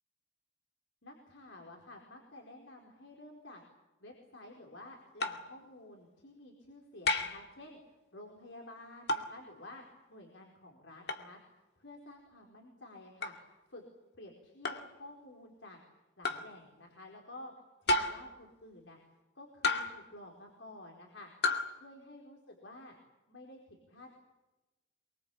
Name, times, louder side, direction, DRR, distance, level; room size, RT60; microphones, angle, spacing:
voice 1, 1.0-3.6 4.0-7.8 8.1-9.8 10.1-11.4 11.8-13.3 13.7-13.8 14.2-15.8 16.2-17.5 17.8-19.0 19.3-21.3 21.7-22.9 23.3-24.2, left 2 dB, 85° left, 1 dB, 4.6 m, -51 dB
sound 1, 5.2-5.5 7.1-7.5 9.1-9.4 11.1-11.3 13.2-13.4 14.6-14.9 16.2-16.5 17.9-18.3 19.6-20.1 21.4-21.7, left 2 dB, 60° left, 2.4 m, -32 dB
24.5 x 24.0 x 8.6 m, 1.1 s
head